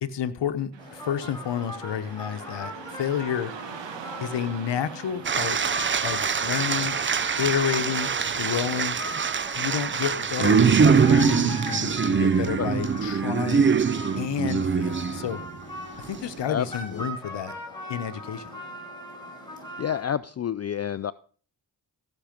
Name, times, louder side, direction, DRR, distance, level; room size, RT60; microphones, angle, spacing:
voice 1, 0.0-3.5 4.2-5.6 6.0-7.0 7.4-8.1 8.4-9.0 9.5-13.7 14.2-15.4 16.0-17.6 17.9-18.5, left 9 dB, 75° left, 11 dB, 1.0 m, -30 dB
Car passing by / Traffic noise roadway noise, 0.7-9.8, right 8 dB, 85° right, 1.3 m, -45 dB
sound 1, 0.8-20.0, left 1 dB, 10° left, 5.2 m, -40 dB
sound 2, 5.2-15.5 16.0-16.4, right 6 dB, 30° right, 0.5 m, -23 dB
voice 2, 16.5-17.0 19.8-21.1, left 9 dB, 40° left, 16 dB, 0.4 m, -29 dB
15.0 x 6.3 x 5.1 m, 0.42 s
cardioid pair, 65°, 43 cm